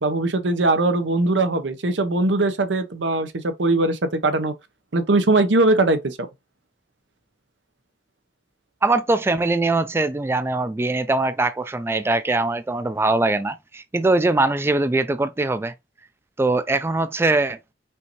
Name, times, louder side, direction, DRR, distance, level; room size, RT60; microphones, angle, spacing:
voice 1, 0.0-4.5 4.9-6.3, right 2 dB, 90° right, 0.8 m, -20 dB
voice 2, 8.8-15.7 16.4-17.6, right 2 dB, 15° right, 0.3 m, -22 dB
5.6 x 2.6 x 3.0 m
head